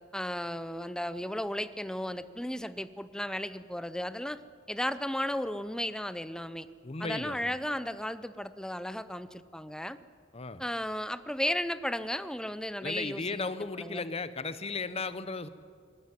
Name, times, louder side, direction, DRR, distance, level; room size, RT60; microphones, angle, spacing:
voice 1, 0.1-4.4 4.7-6.7 7.0-10.0 10.6-13.5 13.8-14.1, left 1 dB, 5° left, 13 dB, 0.6 m, -34 dB
voice 2, 6.8-7.6 10.3-10.6 12.8-15.5, left 3 dB, 30° left, 13 dB, 0.9 m, -36 dB
20.5 x 15.0 x 9.8 m, 2.1 s
head